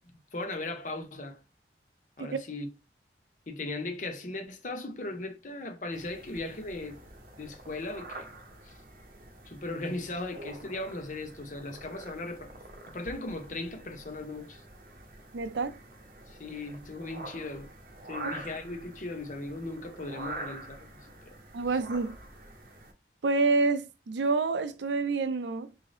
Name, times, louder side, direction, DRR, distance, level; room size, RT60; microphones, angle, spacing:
voice 1, 0.3-1.4 2.2-2.7 3.5-7.0 7.4-8.3 8.6-8.7 9.5-12.5 12.9-14.6 16.3-17.7 18.1-21.3, left 2 dB, 45° left, 0.9 m, -38 dB
sound 1, 5.9-22.9, right 2 dB, 55° right, 0.9 m, -46 dB
voice 2, 15.3-15.8 18.2-18.3 21.5-22.1 23.2-25.7, right 3 dB, 80° right, 0.5 m, -28 dB
3.8 x 2.7 x 3.2 m
head